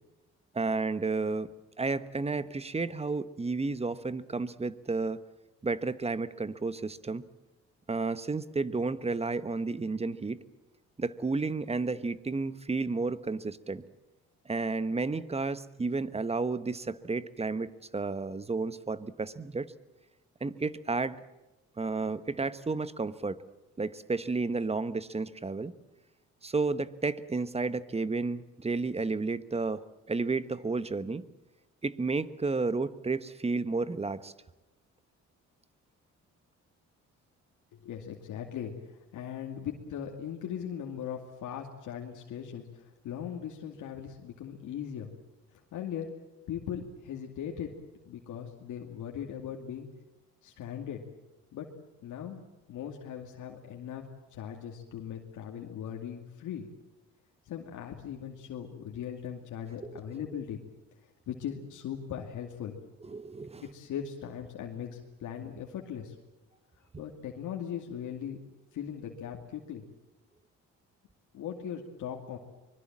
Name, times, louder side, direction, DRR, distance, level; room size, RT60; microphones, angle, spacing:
voice 1, 0.5-1.5 1.8-5.2 5.6-7.2 7.9-10.4 11.0-13.8 14.4-19.7 20.4-21.2 21.8-23.4 23.8-25.7 26.4-31.2 31.8-34.3 59.9-60.0 63.0-63.6, right 3 dB, 20° right, 1.1 m, -32 dB
voice 2, 37.7-45.1 45.7-46.1 46.5-47.7 48.0-49.9 50.4-51.0 51.5-51.7 52.0-52.4 52.7-56.7 57.4-60.6 61.3-62.8 63.6-66.2 67.0-68.4 68.7-69.8 71.3-72.4, left 9 dB, 80° left, 2.5 m, -39 dB
24.0 x 21.5 x 7.4 m
cardioid pair, 90°, 30 cm